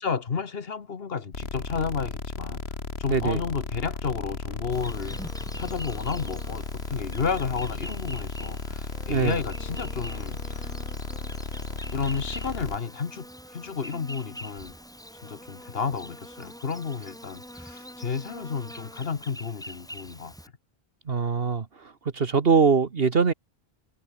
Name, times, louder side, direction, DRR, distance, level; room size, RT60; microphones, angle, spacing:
voice 1, 0.0-2.6 3.0-5.2 5.5-6.6 6.9-10.7 11.9-13.3 13.5-14.7 15.2-20.3, left 5 dB, 70° left, 1.5 m, -31 dB
sound 1, 1.3-12.8, left 3 dB, 85° left, 2.8 m, -35 dB
voice 2, 3.1-3.4 9.1-9.4 21.1-23.3, right 5 dB, 70° right, 1.7 m, -23 dB
Insect, 4.7-20.5, equal, 5° left, 5.4 m, -44 dB
omnidirectional pair, 1.0 m